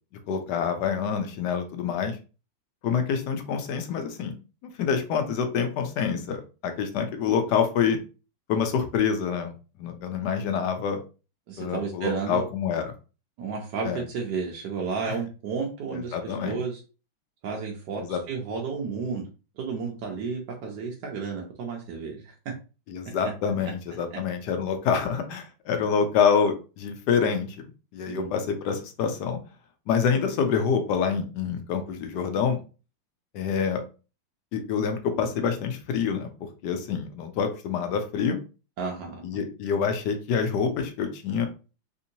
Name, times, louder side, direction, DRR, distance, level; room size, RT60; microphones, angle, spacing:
voice 1, 0.3-2.2 2.8-4.3 4.6-8.0 8.5-9.5 9.8-11.0 11.6-12.9 13.8-14.0 15.0-15.2 16.1-16.6 18.0-18.2 22.9-29.4 29.9-32.6 33.3-33.8 34.5-36.3 36.6-38.4 39.2-41.5, left 6 dB, 75° left, 6 dB, 1.0 m, -26 dB
voice 2, 11.5-12.4 13.4-16.8 17.4-19.3 19.6-22.3 23.6-23.7 28.1-28.3 38.8-39.4, right 5 dB, 70° right, -1 dB, 1.1 m, -32 dB
3.5 x 2.7 x 2.7 m, 0.34 s
omnidirectional pair, 2.2 m